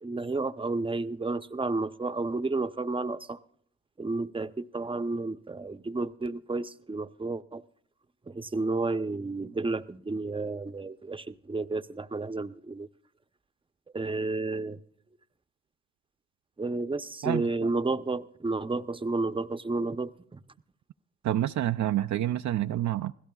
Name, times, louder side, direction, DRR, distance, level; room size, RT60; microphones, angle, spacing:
voice 1, 0.0-3.4 4.0-7.6 8.3-12.9 13.9-14.8 16.6-20.4, right 3 dB, 15° right, 0.8 m, -31 dB
voice 2, 17.2-17.8 21.2-23.1, right 12 dB, 55° right, 0.5 m, -28 dB
26.0 x 16.5 x 2.4 m
supercardioid pair, 45°, 34 cm